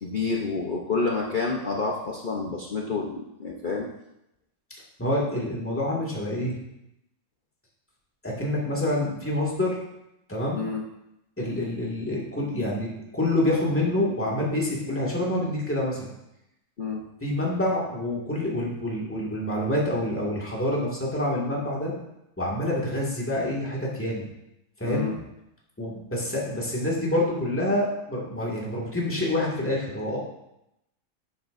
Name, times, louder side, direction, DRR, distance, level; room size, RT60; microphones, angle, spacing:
voice 1, 0.0-3.9 10.5-10.8 16.8-17.0 24.8-25.2, left 4 dB, 40° left, -2 dB, 0.8 m, -28 dB
voice 2, 5.0-6.6 8.2-9.8 10.3-10.6 11.4-16.1 17.2-21.9 22.4-24.2 24.8-25.1 25.8-30.2, left 1 dB, 10° left, -4 dB, 1.9 m, -27 dB
12.0 x 7.8 x 2.6 m, 0.85 s
omnidirectional pair, 1.6 m